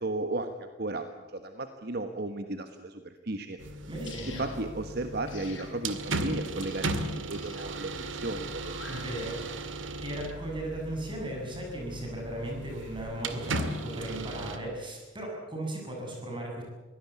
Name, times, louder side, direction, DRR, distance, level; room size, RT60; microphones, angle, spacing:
voice 1, 0.0-3.6 4.3-8.8, right 2 dB, 55° right, 7 dB, 1.4 m, -35 dB
sound 1, 3.6-14.6, right 2 dB, 85° right, 2.2 m, -36 dB
voice 2, 3.9-4.4 8.9-9.5 10.0-16.6, right 1 dB, 25° right, 0 dB, 7.4 m, -36 dB
sound 2, 4.1-4.6 5.3-5.7 6.6-6.9 7.3-7.7 8.6-9.1, left 5 dB, 80° left, 6.4 m, -46 dB
23.5 x 17.5 x 8.3 m, 1.3 s
head